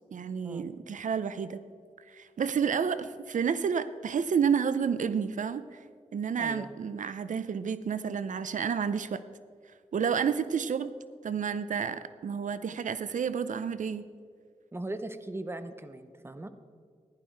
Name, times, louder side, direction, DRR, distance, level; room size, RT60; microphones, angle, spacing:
voice 1, 0.1-1.6 2.1-5.8 6.1-9.2 9.9-10.9 11.2-14.0, right 7 dB, 85° right, 13 dB, 0.5 m, -30 dB
voice 2, 6.4-6.7 14.7-16.5, right 2 dB, 20° right, 10 dB, 0.8 m, -39 dB
15.0 x 11.5 x 4.6 m, 2.1 s
wide cardioid pair, 100°, 13 cm